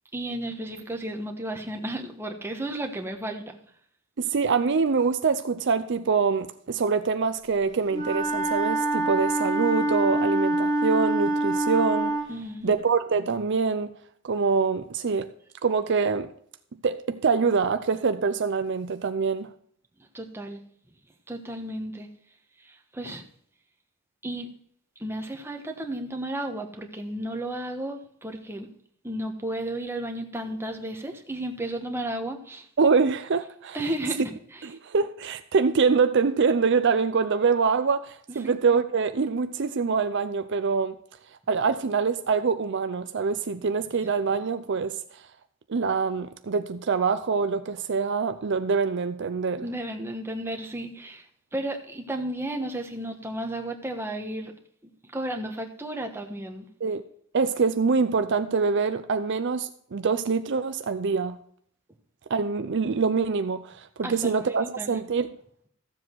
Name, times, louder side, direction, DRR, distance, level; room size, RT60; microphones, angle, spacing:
voice 1, 0.1-3.6 12.3-12.7 20.1-20.6 21.3-22.1 22.6-23.2 24.2-24.5 25.0-28.7 29.0-32.7 33.7-34.6 38.4-38.5 49.6-51.3 51.5-54.5 55.0-56.7 64.0-64.9, right 1 dB, 10° right, 1.3 m, -33 dB
voice 2, 4.2-12.1 12.6-13.9 14.2-15.3 15.6-16.3 16.8-19.5 32.8-33.8 34.6-41.0 41.5-45.2 45.7-49.7 56.8-57.0 57.3-61.4 62.3-65.3, right 5 dB, 55° right, 0.5 m, -25 dB
Wind instrument woodwind instrument, 7.9-12.3, right 1 dB, 20° left, 1.7 m, -25 dB
14.0 x 7.5 x 4.6 m
head